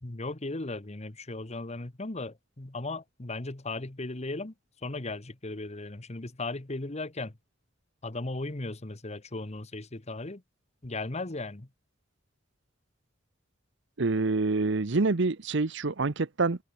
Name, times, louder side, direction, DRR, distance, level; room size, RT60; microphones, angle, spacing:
voice 1, 0.0-4.5 4.8-7.3 8.0-10.4 10.8-11.7, left 2 dB, 35° left, 1.3 m, -36 dB
voice 2, 14.0-16.6, right 3 dB, 65° right, 0.9 m, -26 dB
head